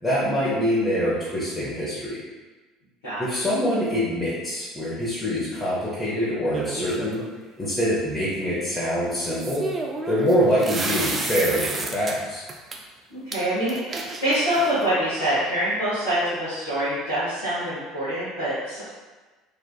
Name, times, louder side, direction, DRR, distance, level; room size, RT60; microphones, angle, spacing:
voice 1, 0.0-2.2 3.2-7.2 7.6-9.7 10.1-12.4, equal, 20° left, -9 dB, 0.9 m, -24 dB
voice 2, 3.0-3.4 13.1-18.8, right 1 dB, 70° left, -14 dB, 1.4 m, -25 dB
sound 1, 6.5-7.3 9.3-12.1 12.5-12.8 13.3-13.4 13.7-14.9, right 3 dB, 30° right, 0.4 m, -31 dB
3.5 x 2.4 x 2.3 m, 1.3 s
hypercardioid pair, 65°, 0 cm